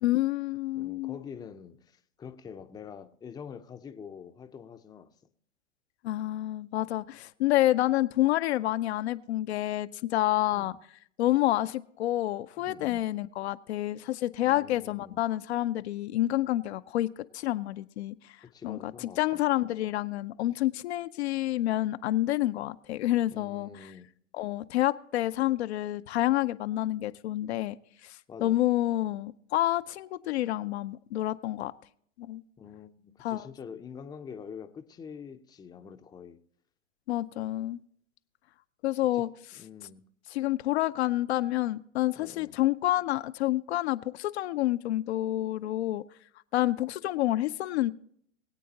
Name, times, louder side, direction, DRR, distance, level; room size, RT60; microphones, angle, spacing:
voice 1, 0.0-1.2 6.0-10.8 11.2-17.1 17.3-18.4 18.6-23.9 24.3-27.8 28.0-31.7 32.2-32.4 33.2-33.5 37.1-37.8 38.8-39.3 40.3-46.0 46.5-47.9, left 15 dB, 60° left, 0.6 m, -28 dB
voice 2, 0.8-5.1 10.5-10.8 12.6-13.0 14.4-15.2 18.5-19.2 23.3-24.1 28.3-28.6 32.6-36.4 39.1-39.2 39.5-40.0 42.2-42.6, left 7 dB, 10° left, 0.6 m, -45 dB
22.5 x 8.4 x 2.8 m
hypercardioid pair, 110°, 36 cm